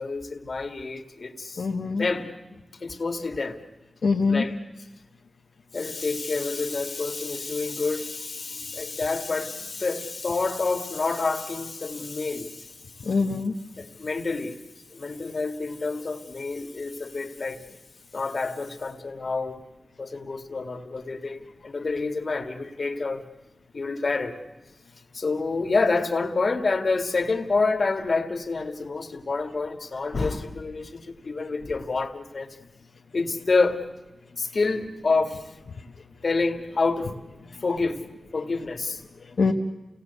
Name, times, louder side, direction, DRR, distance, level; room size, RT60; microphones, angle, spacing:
voice 1, 0.0-1.7 2.0-2.3 2.8-3.6 4.3-4.5 5.7-12.7 13.8-14.6 14.9-17.6 18.1-19.6 20.0-23.2 23.7-24.4 25.1-32.6 33.1-33.8 34.4-35.5 36.2-38.0 38.3-39.0, left 3 dB, 55° left, 6 dB, 2.0 m, -28 dB
voice 2, 1.6-2.1 4.0-4.4 13.0-13.6 39.2-39.5, left 4 dB, 80° left, -1 dB, 1.2 m, -24 dB
29.5 x 18.5 x 8.2 m, 1.1 s
wide cardioid pair, 85°, 0 cm